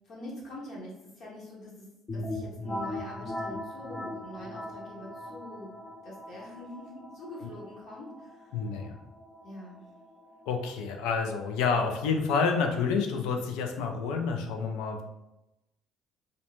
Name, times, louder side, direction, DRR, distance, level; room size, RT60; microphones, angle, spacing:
voice 1, 0.0-8.8 9.4-9.8, left 1 dB, 55° left, -5 dB, 0.9 m, -45 dB
sound 1, 2.1-11.6, left 1 dB, 25° left, 0.5 m, -40 dB
voice 2, 8.5-9.0 10.5-15.0, left 5 dB, 90° left, 4 dB, 0.4 m, -29 dB
2.6 x 2.1 x 2.9 m, 0.92 s
cardioid pair, 115°, 0 cm